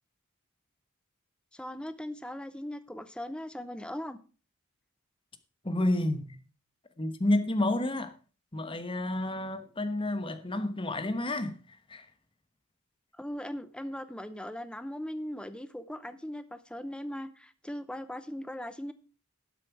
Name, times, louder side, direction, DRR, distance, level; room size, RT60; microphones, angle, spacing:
voice 1, 1.5-4.2 13.2-18.9, equal, 5° left, 0.7 m, -39 dB
voice 2, 5.6-6.4 7.0-8.1 8.5-11.6 11.9-12.1, left 1 dB, 25° left, 1.1 m, -30 dB
12.5 x 7.5 x 4.6 m
head